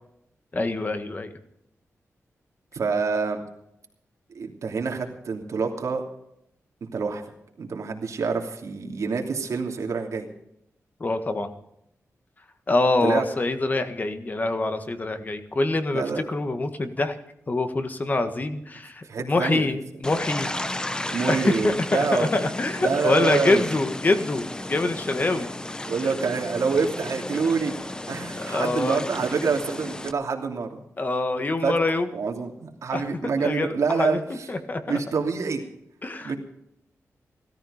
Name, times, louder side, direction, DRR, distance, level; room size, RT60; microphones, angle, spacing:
voice 1, 0.5-1.3 11.0-11.5 12.7-17.2 17.5-20.5 21.3-25.5 26.0-26.1 28.3-29.0 31.0-32.1 32.9-33.0 33.4-35.0 36.0-36.3, left 2 dB, 30° left, 8 dB, 1.6 m, -25 dB
voice 2, 2.7-3.4 4.3-6.0 6.9-7.2 7.6-10.3 13.0-13.2 15.9-16.2 19.0-19.7 21.1-22.3 22.8-23.6 25.9-27.7 28.1-30.8 31.6-31.7 32.1-34.5 34.8-35.6 36.2-36.4, right 5 dB, 75° right, 2 dB, 2.9 m, -26 dB
sound 1, 20.0-30.1, left 1 dB, 15° left, 0.8 m, -33 dB
17.0 x 13.5 x 5.0 m, 0.79 s
wide cardioid pair, 140°, 5 cm